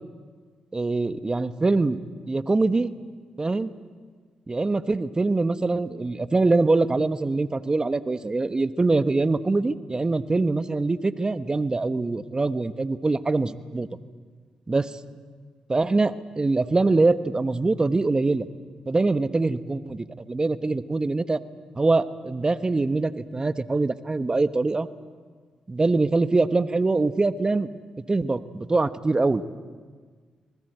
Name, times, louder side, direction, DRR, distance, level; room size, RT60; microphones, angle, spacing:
voice 1, 0.7-2.0 2.3-2.9 3.4-3.7 4.5-13.9 14.7-14.9 15.7-18.5 18.9-21.4 21.8-24.9 25.7-27.7 28.1-29.4, right 3 dB, 30° right, 11 dB, 1.2 m, -23 dB
26.0 x 20.0 x 8.1 m, 1.6 s
supercardioid pair, 45°, 3 cm